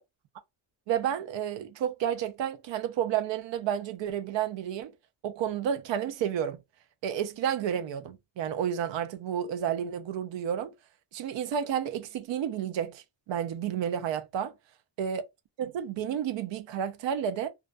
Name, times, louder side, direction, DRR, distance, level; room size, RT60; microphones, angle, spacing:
voice 1, 0.9-4.9 5.2-6.6 7.0-10.7 11.1-14.5 15.0-15.2 15.6-17.5, right 9 dB, 65° right, 0.5 m, -31 dB
2.3 x 2.2 x 2.4 m
cardioid pair, 115°, 48 cm